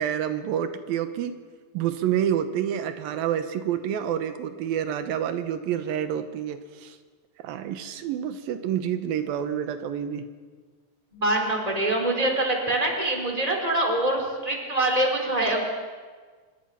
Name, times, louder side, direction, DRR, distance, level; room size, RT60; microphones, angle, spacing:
voice 1, 0.0-1.4 1.7-7.0 7.4-10.3, right 9 dB, 90° right, 8 dB, 2.9 m, -28 dB
voice 2, 11.1-15.6, right 1 dB, 10° right, 1 dB, 4.0 m, -24 dB
25.5 x 22.5 x 5.8 m, 1.5 s
omnidirectional pair, 4.1 m